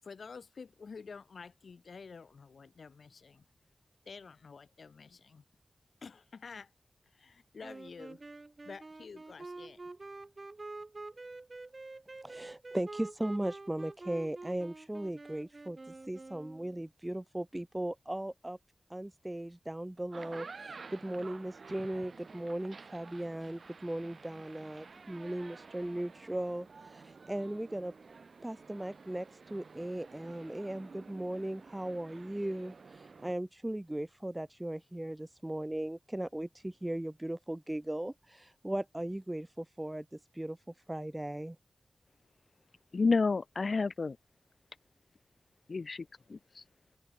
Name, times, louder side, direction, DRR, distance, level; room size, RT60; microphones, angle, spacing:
voice 1, 0.0-3.5 4.1-5.4 6.0-6.7 7.1-8.2 8.6-9.8, left 5 dB, 75° left, 7.0 m, -49 dB
sound 1, 7.6-16.8, right 2 dB, 35° right, 1.0 m, -47 dB
voice 2, 12.2-15.8 16.1-18.6 18.9-27.9 28.4-40.6 40.9-41.6, right 1 dB, 15° right, 2.1 m, -38 dB
sound 2, 20.0-33.3, right 4 dB, 65° right, 2.6 m, -51 dB
voice 3, 42.9-44.2 45.7-46.6, left 4 dB, 55° left, 1.0 m, -30 dB
wide cardioid pair, 100°, 0 cm